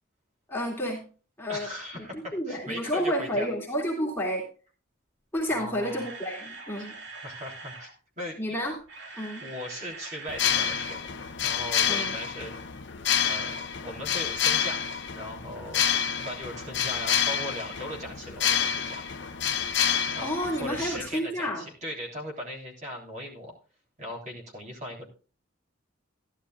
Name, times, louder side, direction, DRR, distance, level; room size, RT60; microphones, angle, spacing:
voice 1, 0.5-1.0 1.4-1.7 2.0-4.4 5.3-6.9 8.4-8.7 9.2-9.4 11.9-12.2 20.2-21.6, equal, 10° left, -3 dB, 2.4 m, -30 dB
voice 2, 1.5-3.5 5.5-6.1 6.8-6.9 7.2-7.9 8.2-8.6 9.4-11.2 11.4-12.5 13.2-13.6 13.8-14.8 15.1-15.8 16.2-19.0 20.1-20.3 20.6-23.5 24.0-25.1, equal, 35° right, -1 dB, 3.4 m, -38 dB
Camera, 5.5-7.9 8.7-11.0 11.2-11.4 11.9-12.0, right 3 dB, 60° right, 2.6 m, -43 dB
sound 1, 10.3-21.1, left 8 dB, 60° left, 0.7 m, -28 dB
14.5 x 11.5 x 2.4 m, 0.36 s
head